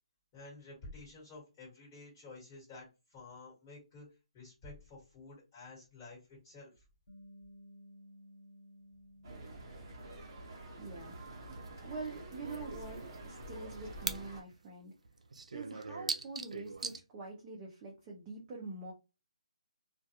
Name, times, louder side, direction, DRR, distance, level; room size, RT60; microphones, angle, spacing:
voice 1, 0.3-4.1 4.3-6.8, left 3 dB, 15° left, -4 dB, 1.3 m, -51 dB
Bass guitar, 7.1-13.3, equal, 65° left, 1.1 m, -59 dB
sound 1, 9.2-14.4, right 2 dB, 35° right, 0.8 m, -47 dB
voice 2, 10.8-11.5 11.8-14.9 15.5-18.9, right 3 dB, 15° right, -3 dB, 0.4 m, -45 dB
sound 2, 11.7-11.8 12.1-12.2 12.5-12.6 12.9-14.2 14.5-14.6 15.0-17.0, right 4 dB, 85° right, 0.4 m, -40 dB
2.2 x 2.1 x 2.8 m, 0.28 s
hypercardioid pair, 170°, 4 cm